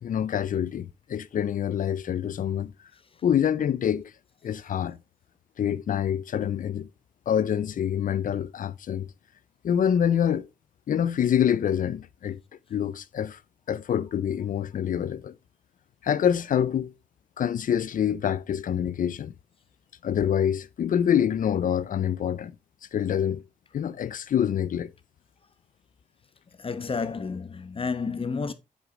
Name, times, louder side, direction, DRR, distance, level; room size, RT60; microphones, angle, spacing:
voice 1, 0.0-2.7 3.2-4.1 4.4-5.0 5.6-6.9 7.3-9.1 9.6-10.5 10.9-12.4 12.7-13.4 13.7-15.4 16.0-16.9 17.4-19.3 20.0-22.5 22.9-23.4 23.7-24.9, left 9 dB, 70° left, 0.5 m, -26 dB
voice 2, 26.5-28.5, left 5 dB, 40° left, 1.0 m, -31 dB
8.0 x 4.8 x 3.6 m
cardioid pair, 60°, 14 cm